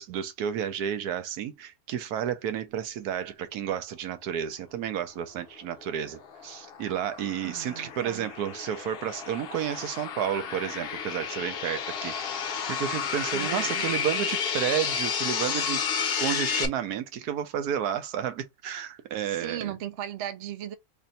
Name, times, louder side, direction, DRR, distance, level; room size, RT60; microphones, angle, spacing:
voice 1, 0.0-15.8 16.2-19.7, right 9 dB, 85° right, 1.2 m, -31 dB
sound 1, 5.8-16.7, left 7 dB, 55° left, 0.7 m, -31 dB
voice 2, 7.4-8.3 13.3-13.8 19.3-20.8, right 11 dB, 60° right, 0.8 m, -37 dB
3.3 x 2.5 x 4.0 m
omnidirectional pair, 1.6 m